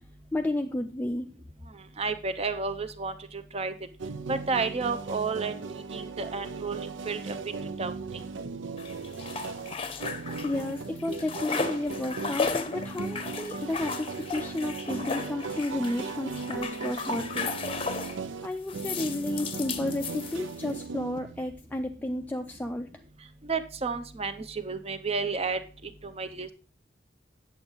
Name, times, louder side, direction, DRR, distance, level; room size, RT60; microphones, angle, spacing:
voice 1, 0.3-1.3 10.4-17.5 18.4-22.9, left 1 dB, 10° left, 4 dB, 0.3 m, -32 dB
voice 2, 2.0-3.7 4.3-5.5 5.9-6.8 7.1-7.3 7.8-7.9 23.5-25.6 26.2-26.5, right 4 dB, 35° right, 10 dB, 0.6 m, -31 dB
sound 1, 4.0-21.4, right 4 dB, 90° right, 0.6 m, -37 dB
sound 2, 8.8-10.7 11.0-18.2 18.7-20.7, left 4 dB, 30° left, 0.7 m, -35 dB
8.8 x 7.0 x 3.9 m, 0.38 s
head